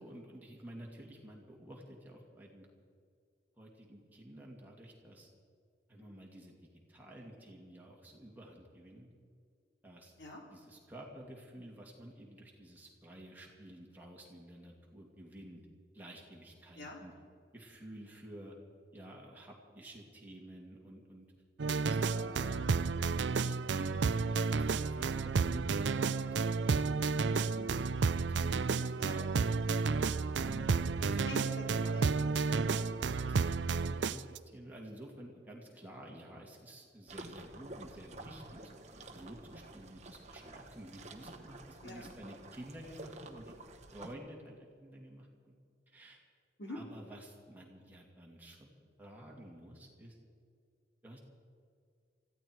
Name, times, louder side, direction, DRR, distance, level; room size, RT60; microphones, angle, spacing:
voice 1, 0.0-2.7 3.6-5.3 5.9-6.6 6.9-9.1 9.8-10.1 10.5-15.6 15.9-17.1 17.5-18.5 18.9-21.3 21.8-22.8 23.0-27.7 28.3-29.7 30.4-31.5 32.5-43.5 43.9-45.5 45.9-46.2 46.7-50.2 51.0-51.2, right 1 dB, 10° right, -2 dB, 2.5 m, -51 dB
sound 1, 21.6-34.4, right 4 dB, 80° right, 0.5 m, -31 dB
voice 2, 31.1-32.6 33.4-33.5 41.8-42.1 46.6-46.8, left 2 dB, 75° left, 0 dB, 2.9 m, -46 dB
sound 2, 37.1-44.2, right 2 dB, 35° right, 1.2 m, -50 dB
20.0 x 15.0 x 4.7 m, 2.3 s
head